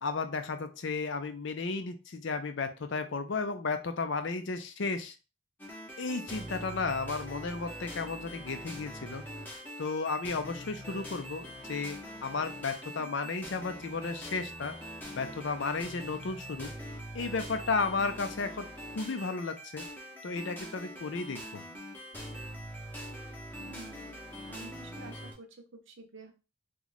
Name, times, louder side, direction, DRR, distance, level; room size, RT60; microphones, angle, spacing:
voice 1, 0.0-5.2 6.0-9.2 9.8-14.8 15.1-16.7 17.1-18.7 18.9-19.8 20.2-21.6, left 4 dB, 55° left, 8 dB, 0.5 m, -34 dB
sound 1, 5.6-25.3, equal, 10° left, 0.8 m, -43 dB
voice 2, 13.0-13.3 23.6-24.2 24.5-26.3, right 3 dB, 55° right, 4 dB, 0.7 m, -50 dB
3.0 x 2.3 x 4.0 m, 0.31 s
head